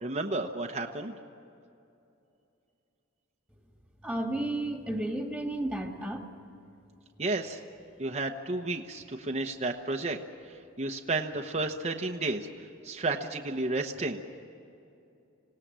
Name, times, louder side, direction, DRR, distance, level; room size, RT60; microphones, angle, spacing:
voice 1, 0.0-1.1 7.2-7.6 8.0-10.2 10.8-12.5 12.8-14.2, right 2 dB, 30° right, 1 dB, 1.0 m, -32 dB
voice 2, 4.0-6.3, right 1 dB, ahead, 2 dB, 2.1 m, -32 dB
27.0 x 18.0 x 7.6 m, 2.7 s
head